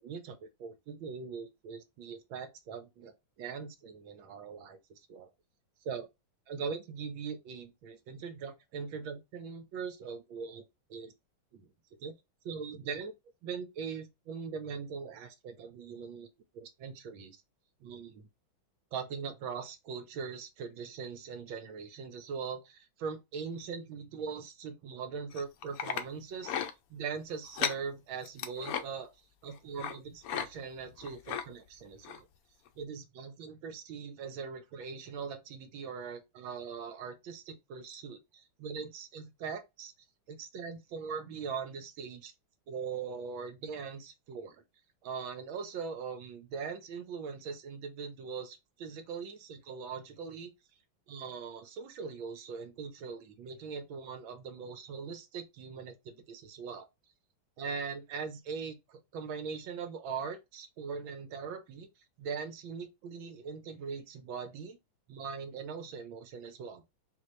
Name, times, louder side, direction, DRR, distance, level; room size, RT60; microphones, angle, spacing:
voice 1, 0.0-4.8 5.1-5.3 5.8-6.1 6.5-10.6 10.9-11.1 11.5-11.7 12.0-12.1 12.4-13.1 13.4-16.3 16.5-17.4 17.8-18.3 18.9-26.6 26.9-29.1 29.4-32.3 32.8-39.9 40.3-42.3 42.7-44.6 45.0-50.5 51.1-56.9 57.6-61.9 62.2-64.8 65.1-66.8, right 5 dB, 80° right, 1.6 m, -41 dB
sound 1, 25.3-26.0 26.4-26.7 27.4-27.8 28.2-28.8 29.8-30.0 30.2-30.5 30.8-31.4 32.0-32.2 32.7-32.8, left 9 dB, 85° left, 0.7 m, -35 dB
4.1 x 2.7 x 3.1 m
omnidirectional pair, 2.2 m